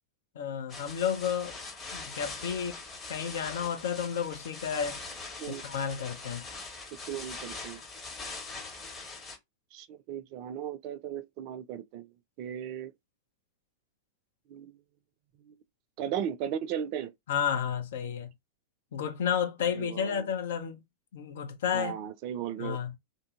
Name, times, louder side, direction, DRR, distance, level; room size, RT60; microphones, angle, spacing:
voice 1, 0.3-1.6 1.9-2.8 3.1-5.0 5.5-6.4 17.3-18.3 18.9-20.8 21.1-21.9 22.6-22.9, left 8 dB, 60° left, 0.6 m, -31 dB
sound 1, 0.7-9.4, left 3 dB, 25° left, 1.3 m, -42 dB
voice 2, 7.1-7.8 9.7-12.1 12.4-12.9 14.5-14.8 15.4-15.6 16.0-17.1 19.7-20.3 21.7-22.8, right 9 dB, 45° right, 0.4 m, -36 dB
2.7 x 2.6 x 3.6 m
figure-of-eight pair, 90°, 0 cm